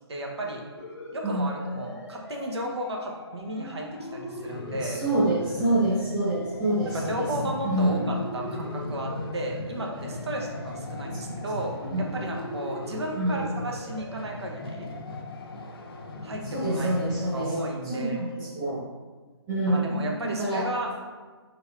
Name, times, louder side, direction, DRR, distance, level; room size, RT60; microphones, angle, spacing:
voice 1, 0.1-0.6 1.1-5.0 6.9-14.9 16.2-16.9 17.2-18.2 19.7-20.9, right 1 dB, 70° right, 0 dB, 0.9 m, -34 dB
sound 1, 0.8-17.2, left 2 dB, 80° left, 1.1 m, -42 dB
sound 2, 4.1-17.4, left 1 dB, 55° left, 0.7 m, -38 dB
voice 2, 4.8-7.3 7.6-8.1 11.9-12.1 13.1-13.5 16.4-17.5 17.8-18.8 19.5-20.7, right 1 dB, 15° right, -12 dB, 1.1 m, -26 dB
4.4 x 3.9 x 2.4 m, 1.4 s
hypercardioid pair, 150°, 14 cm